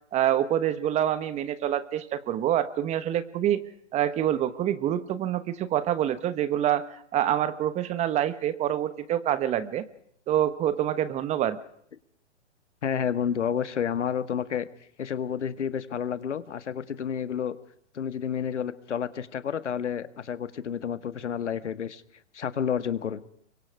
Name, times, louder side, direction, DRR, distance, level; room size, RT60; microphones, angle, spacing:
voice 1, 0.1-3.6 3.9-9.9 10.3-11.6, right 11 dB, 20° right, 14 dB, 1.1 m, -26 dB
voice 2, 12.8-14.6 15.0-17.5 17.9-22.0 22.3-23.2, left 8 dB, 80° left, 13 dB, 1.7 m, -30 dB
26.5 x 24.0 x 4.8 m, 0.66 s
hypercardioid pair, 135°, 35 cm